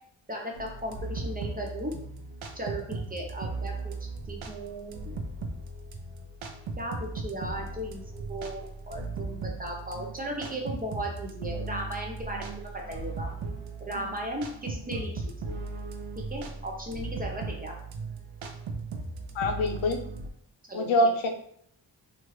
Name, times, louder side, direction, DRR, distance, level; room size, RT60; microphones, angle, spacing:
voice 1, 0.3-1.9 2.5-3.9 4.3-5.1 6.8-13.3 13.9-15.5 16.3-17.7 20.7-20.9, right 1 dB, 20° right, 0 dB, 0.6 m, -36 dB
sound 1, 0.5-20.3, right 3 dB, 85° right, 0.6 m, -37 dB
voice 2, 19.4-20.0 20.7-21.3, left 1 dB, 85° left, 4 dB, 0.6 m, -24 dB
3.1 x 2.4 x 3.0 m, 0.66 s
wide cardioid pair, 120°, 46 cm